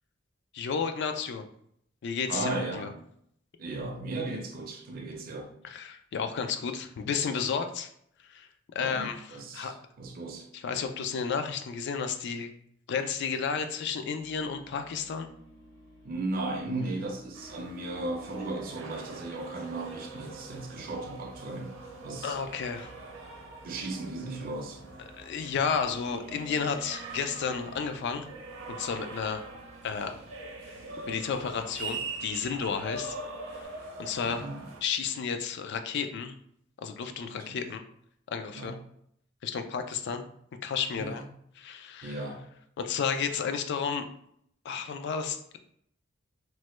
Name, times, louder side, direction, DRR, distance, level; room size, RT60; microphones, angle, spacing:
voice 1, 0.5-1.5 2.0-2.9 5.6-7.9 8.3-9.2 9.5-9.7 10.5-12.5 12.9-15.3 22.2-22.9 25.1-28.3 28.7-29.4 29.8-30.2 31.1-33.2 33.5-33.7 34.0-34.5 34.8-36.3 36.8-37.8 38.3-38.8 39.4-40.2 40.6-41.2 41.6-42.2 42.8-44.0 44.6-45.6, left 6 dB, 60° left, 0.3 m, -32 dB
voice 2, 2.3-3.0 3.6-5.5 8.8-10.5 16.0-21.7 22.0-22.4 23.6-25.0 34.2-34.7 37.2-37.7 38.5-38.7 40.9-41.2 42.0-42.5, right 2 dB, 45° right, 0.4 m, -36 dB
sound 1, 14.2-33.6, right 2 dB, 80° left, 1.5 m, -53 dB
sound 2, 17.4-34.8, right 3 dB, 85° right, 0.7 m, -43 dB
3.1 x 2.1 x 3.0 m
head